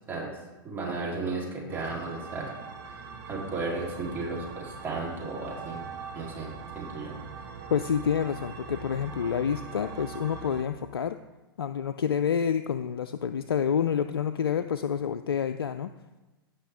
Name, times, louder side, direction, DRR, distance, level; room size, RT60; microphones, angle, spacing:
voice 1, 0.6-2.5 2.8-3.0 3.3-5.9 6.1-7.2, right 3 dB, 20° right, -4 dB, 3.2 m, -34 dB
sound 1, 1.7-10.6, right 5 dB, 60° right, 1.8 m, -42 dB
voice 2, 7.7-11.2 11.6-15.9, left 8 dB, 80° left, 10 dB, 0.4 m, -28 dB
16.5 x 5.6 x 3.5 m, 1.1 s
figure-of-eight pair, 100°, 12 cm